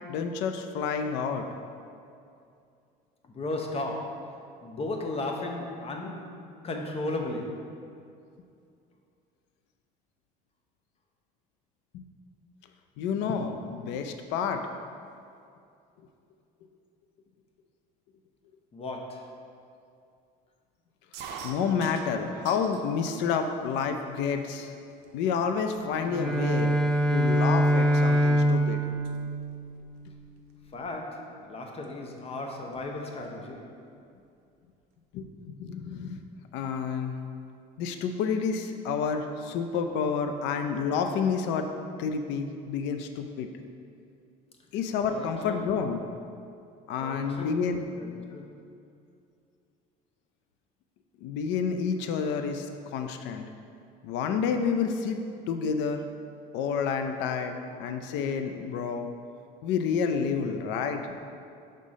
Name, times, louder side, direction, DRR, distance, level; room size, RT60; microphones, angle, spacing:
voice 1, 0.1-1.5 11.9-12.0 13.0-14.7 21.2-24.7 25.1-26.8 27.1-28.8 35.1-36.2 36.5-37.2 37.8-41.7 42.0-43.5 44.7-46.0 46.9-47.8 51.2-53.4 54.0-55.2 55.5-56.1 56.5-59.1 59.6-61.1, left 6 dB, 75° left, 6 dB, 0.5 m, -29 dB
voice 2, 3.3-7.8 18.7-19.4 30.7-33.8 45.0-45.9 47.0-48.6, left 2 dB, 35° left, 2 dB, 0.8 m, -36 dB
sound 1, 21.1-22.9 23.3-24.0 24.6-24.7 25.0-25.4 26.0-26.1 26.3-28.6 28.8-29.2 30.5-30.7 31.8-31.9 32.2-32.3 32.5-33.4, right 5 dB, 70° right, 0.6 m, -45 dB
Bowed string instrument, 26.0-30.2, right 1 dB, 5° left, 0.7 m, -24 dB
5.6 x 3.7 x 5.0 m, 2.5 s
cardioid pair, 110°, 18 cm